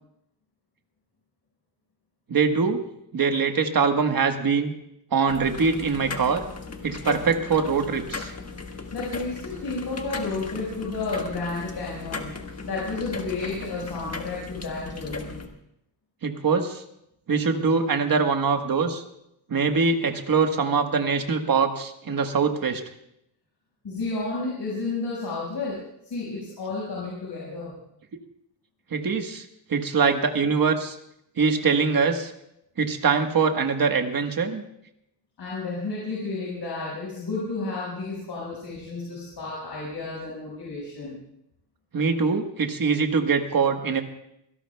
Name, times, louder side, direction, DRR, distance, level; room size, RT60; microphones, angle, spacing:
voice 1, 2.3-2.8 3.1-4.7 5.1-6.4 6.8-8.3 16.2-16.8 17.3-19.0 19.5-22.8 28.9-31.0 31.4-32.3 32.8-34.6 41.9-44.0, right 5 dB, 50° right, 5 dB, 1.4 m, -23 dB
sound 1, 5.3-15.5, left 4 dB, 35° left, 1.3 m, -37 dB
voice 2, 8.7-15.4 23.8-25.7 26.0-27.8 35.4-41.2, left 3 dB, 60° left, -5 dB, 5.3 m, -32 dB
25.0 x 17.5 x 2.3 m, 0.78 s
wide cardioid pair, 160°, 43 cm